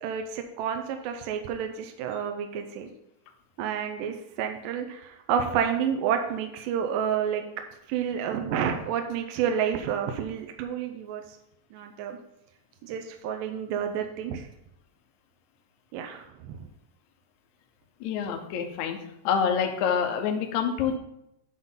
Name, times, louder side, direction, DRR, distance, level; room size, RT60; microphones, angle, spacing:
voice 1, 0.0-2.9 3.6-7.4 7.9-11.2 11.7-12.2 12.8-14.5 15.9-16.6, right 8 dB, 80° right, 5 dB, 2.2 m, -30 dB
voice 2, 18.0-19.0 19.3-21.0, left 7 dB, 70° left, 4 dB, 1.9 m, -26 dB
9.7 x 3.8 x 5.5 m, 0.83 s
omnidirectional pair, 4.0 m